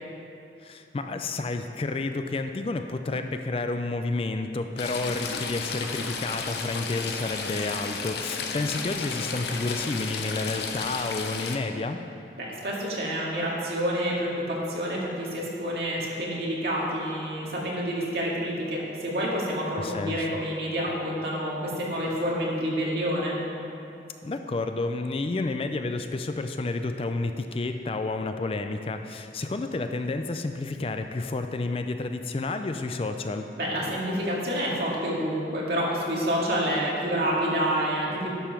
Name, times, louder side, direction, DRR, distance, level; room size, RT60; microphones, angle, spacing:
voice 1, 0.6-12.0 19.8-20.3 24.2-33.5, left 3 dB, 30° left, 7 dB, 0.4 m, -30 dB
Stream / Trickle dribble, 4.8-11.6, left 4 dB, 70° left, 0.8 m, -33 dB
voice 2, 12.4-23.3 33.6-38.4, equal, 60° right, -4 dB, 2.0 m, -28 dB
11.5 x 5.5 x 5.9 m, 2.7 s
head